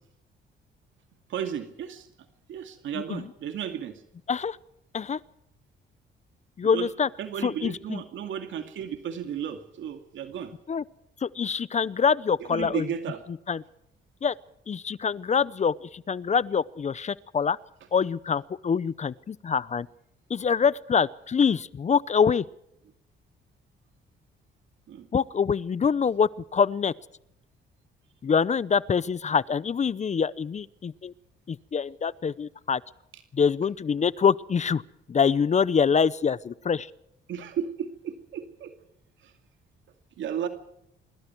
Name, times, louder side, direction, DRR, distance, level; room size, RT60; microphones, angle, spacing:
voice 1, 1.3-2.1 2.5-4.0 6.6-6.9 7.2-10.5 12.4-13.2 24.9-25.1 37.3-38.7 39.2-39.3 40.2-40.5, right 8 dB, 75° right, 7 dB, 2.4 m, -34 dB
voice 2, 6.6-7.1 7.4-8.0 10.7-10.8 11.2-12.9 13.5-13.6 14.2-14.3 14.7-17.6 17.9-19.9 20.3-22.4 25.1-26.9 28.2-31.1 31.5-32.8 33.3-34.8 35.1-36.9, left 6 dB, 35° left, 20 dB, 0.7 m, -25 dB
25.5 x 23.0 x 4.7 m, 0.78 s
cardioid pair, 90°, 20 cm